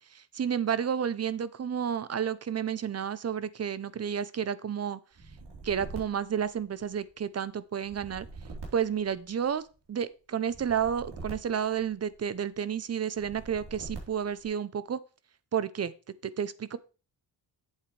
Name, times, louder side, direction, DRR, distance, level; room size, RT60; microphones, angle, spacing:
voice 1, 0.1-5.0 5.6-8.3 8.7-9.6 9.9-15.0 15.5-15.9 16.2-16.8, right 8 dB, 35° right, 17 dB, 0.6 m, -31 dB
sound 1, 5.1-7.1 7.8-9.7 10.4-12.4 13.1-14.5, right 3 dB, 70° right, 3.9 m, -44 dB
8.4 x 7.8 x 3.3 m, 0.34 s
cardioid pair, 95°, 43 cm